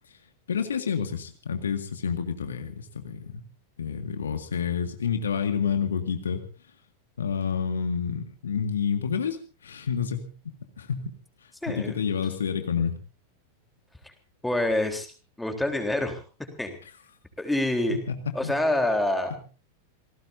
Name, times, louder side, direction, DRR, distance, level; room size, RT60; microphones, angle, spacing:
voice 1, 0.5-3.4 3.8-6.4 7.2-11.1 11.7-12.9 17.9-18.6, left 6 dB, 70° left, 7 dB, 1.9 m, -29 dB
voice 2, 11.6-12.0 14.4-15.1 15.4-16.7 17.4-18.0 18.3-19.3, left 1 dB, 5° left, 5 dB, 3.7 m, -26 dB
28.0 x 18.5 x 2.7 m, 0.35 s
figure-of-eight pair, 90°, 0 cm